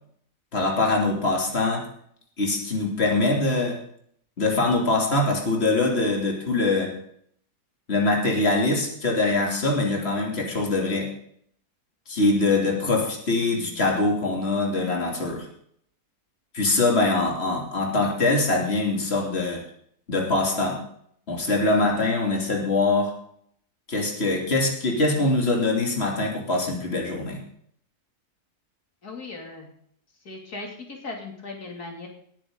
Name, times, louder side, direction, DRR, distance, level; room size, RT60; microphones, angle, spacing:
voice 1, 0.5-1.9 2.4-3.8 4.4-6.9 7.9-11.1 12.1-15.5 16.5-19.6 20.1-20.8 21.3-23.1 23.9-27.4, left 2 dB, 40° left, 0 dB, 3.3 m, -23 dB
voice 2, 29.0-29.7 30.2-32.1, left 3 dB, 80° left, 0 dB, 3.3 m, -37 dB
19.0 x 10.0 x 3.9 m, 0.64 s
omnidirectional pair, 1.6 m